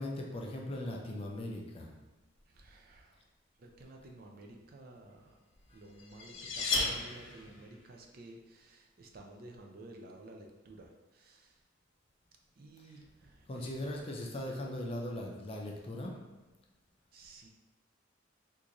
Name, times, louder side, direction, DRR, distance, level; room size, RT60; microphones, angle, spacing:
voice 1, 0.0-1.9 6.4-6.5 13.5-16.2, left 1 dB, 30° left, 0 dB, 0.4 m, -39 dB
voice 2, 2.5-3.2 3.6-5.4 5.7-11.6 12.6-14.8 17.1-17.5, right 2 dB, 50° right, 1 dB, 0.4 m, -53 dB
sound 1, 5.6-7.7, left 3 dB, 80° left, 0.6 m, -34 dB
3.7 x 2.5 x 2.9 m, 1.2 s
head